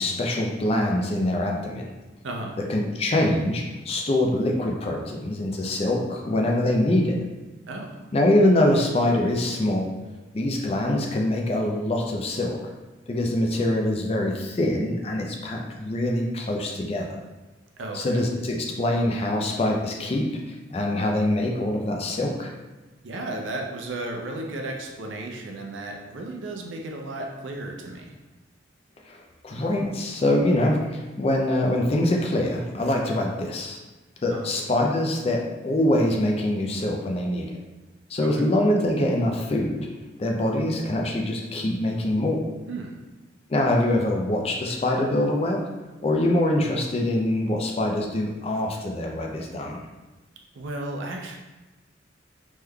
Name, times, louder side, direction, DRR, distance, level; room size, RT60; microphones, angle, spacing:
voice 1, 0.0-1.9 2.7-7.2 8.1-9.9 10.3-12.6 13.1-17.2 17.9-22.5 29.0-33.8 34.2-37.6 38.1-39.9 40.2-42.5 43.5-45.6 46.0-49.8, left 1 dB, 30° left, 1 dB, 0.3 m, -24 dB
voice 2, 2.2-2.6 7.7-8.0 17.8-18.2 23.0-28.1 34.3-34.5 38.2-38.4 42.7-43.0 50.5-51.4, right 2 dB, 80° right, 1 dB, 0.5 m, -34 dB
3.6 x 3.1 x 2.2 m, 1.2 s
head